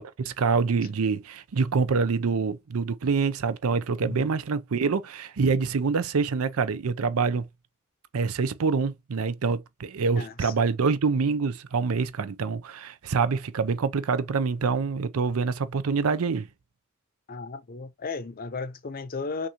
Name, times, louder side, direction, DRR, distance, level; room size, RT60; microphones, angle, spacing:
voice 1, 0.0-7.5 8.1-16.5, right 5 dB, 85° right, 0.5 m, -26 dB
voice 2, 10.1-10.5 17.3-19.5, left 4 dB, 45° left, 0.6 m, -35 dB
5.9 x 2.6 x 2.9 m
head